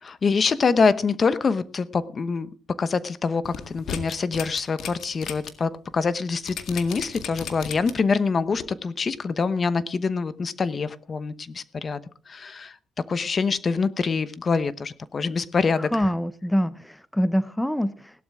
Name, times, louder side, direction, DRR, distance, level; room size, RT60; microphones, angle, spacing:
voice 1, 0.0-2.5 2.8-12.0 12.3-12.8 13.1-16.0, left 4 dB, 40° left, 15 dB, 0.9 m, -25 dB
sound 1, 3.4-5.5 5.9-6.0 6.5-8.1 8.6-8.7, left 8 dB, 75° left, 1.9 m, -35 dB
voice 2, 15.8-18.2, equal, 5° left, 15 dB, 0.7 m, -25 dB
17.0 x 12.0 x 3.6 m, 0.38 s
cardioid pair, 90°, 0 cm